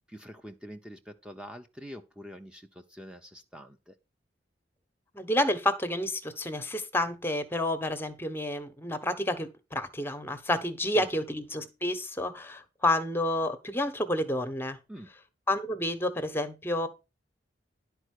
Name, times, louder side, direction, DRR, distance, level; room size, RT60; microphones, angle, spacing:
voice 1, 0.1-3.9 10.9-11.1 14.9-15.1, equal, 5° right, 0.9 m, -45 dB
voice 2, 5.1-14.8 15.5-16.9, left 1 dB, 15° left, 1.3 m, -30 dB
11.5 x 4.6 x 6.5 m
head